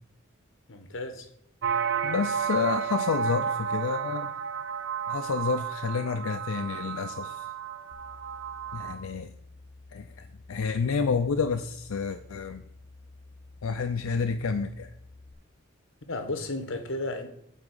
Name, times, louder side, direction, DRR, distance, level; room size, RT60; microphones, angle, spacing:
voice 1, 0.7-1.3 16.1-17.3, left 2 dB, 65° left, 7 dB, 1.1 m, -33 dB
sound 1, 1.6-8.9, right 7 dB, 65° right, 0.7 m, -32 dB
voice 2, 2.0-4.3 5.1-7.5 8.7-9.3 9.9-12.6 13.6-14.9, left 5 dB, 85° left, 8 dB, 0.5 m, -29 dB
sound 2, 7.9-15.3, left 2 dB, 45° left, 0.7 m, -51 dB
8.8 x 3.6 x 6.6 m, 0.73 s
head